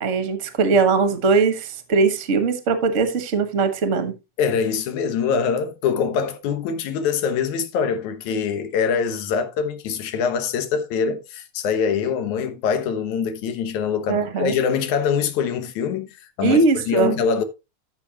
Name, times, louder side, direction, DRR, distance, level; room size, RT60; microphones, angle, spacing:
voice 1, 0.0-4.1 14.1-14.6 16.4-17.1, right 4 dB, 40° right, 1.0 m, -20 dB
voice 2, 4.4-17.4, left 6 dB, 75° left, 2.6 m, -24 dB
13.5 x 6.4 x 2.9 m
omnidirectional pair, 3.4 m